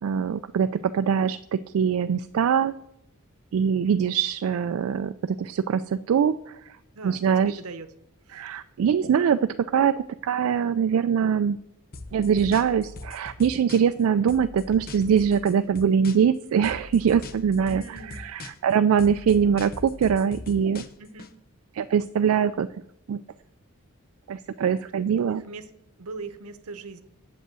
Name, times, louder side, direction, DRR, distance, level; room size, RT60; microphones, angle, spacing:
voice 1, 0.0-2.7 3.5-6.8 7.0-7.6 8.3-11.6 12.1-20.8 21.7-22.8 23.1-23.2 24.3-25.4, right 7 dB, 70° right, 10 dB, 0.3 m, -23 dB
voice 2, 6.9-7.9 8.2-8.6 17.6-18.2 21.0-21.3 25.0-25.7 26.0-27.0, right 4 dB, 85° right, 11 dB, 0.8 m, -40 dB
sound 1, 11.9-14.0 14.3-16.4 16.6-18.7 19.0-21.3, left 3 dB, 40° left, 0.7 m, -41 dB
7.7 x 5.4 x 7.5 m, 0.77 s
head